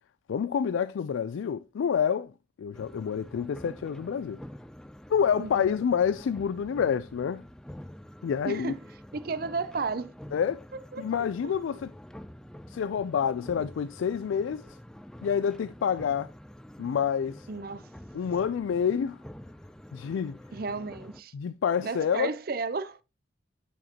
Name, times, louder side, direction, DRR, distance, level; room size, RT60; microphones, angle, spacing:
voice 1, 0.3-2.3 2.6-4.4 5.1-7.4 8.2-8.7 10.3-10.6 11.0-11.9 12.7-14.8 15.2-16.3 16.8-17.5 18.1-19.2 19.9-20.4 21.3-22.3, left 7 dB, 90° left, 0.3 m, -28 dB
sound 1, 2.7-21.2, equal, 5° left, 0.3 m, -47 dB
voice 2, 5.4-5.7 8.4-8.8 9.1-10.1 10.9-11.0 17.5-17.9 20.5-21.3 21.8-23.0, right 4 dB, 50° right, 0.5 m, -33 dB
9.1 x 6.3 x 2.9 m
head